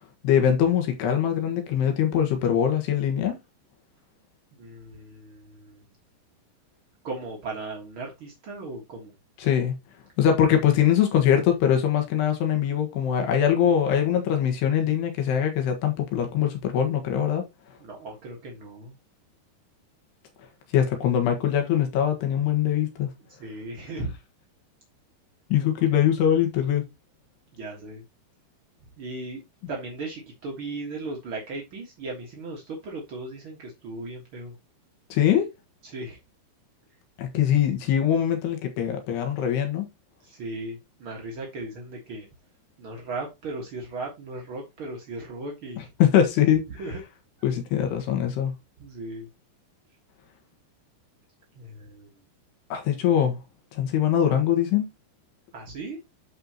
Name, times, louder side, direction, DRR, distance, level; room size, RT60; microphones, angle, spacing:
voice 1, 0.2-3.4 9.4-9.8 10.2-17.4 20.7-23.1 25.5-26.8 35.1-35.5 37.2-39.9 46.0-46.6 47.4-48.5 52.7-53.4 53.7-54.9, left 9 dB, 70° left, 3.5 m, -22 dB
voice 2, 4.6-5.8 7.0-9.1 17.8-18.9 23.4-24.1 27.5-28.0 29.0-29.4 29.7-34.6 35.8-36.2 40.2-42.3 42.8-45.9 46.8-47.0 48.8-49.3 51.5-52.2 55.5-56.0, right 2 dB, 65° right, 1.2 m, -37 dB
12.0 x 4.5 x 2.9 m
omnidirectional pair, 5.1 m